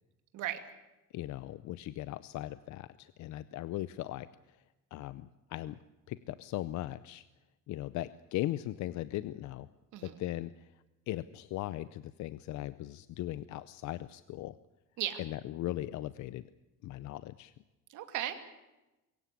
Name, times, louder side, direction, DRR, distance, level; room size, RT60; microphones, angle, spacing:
voice 1, 1.1-4.3 4.9-5.8 6.1-7.2 7.7-9.7 10.2-10.7 11.1-14.5 15.2-16.4 16.8-17.5, left 15 dB, 60° left, 15 dB, 0.7 m, -38 dB
voice 2, 17.9-18.4, right 12 dB, 65° right, 8 dB, 2.5 m, -36 dB
22.5 x 17.5 x 8.4 m, 1.0 s
cardioid pair, 180°, 32 cm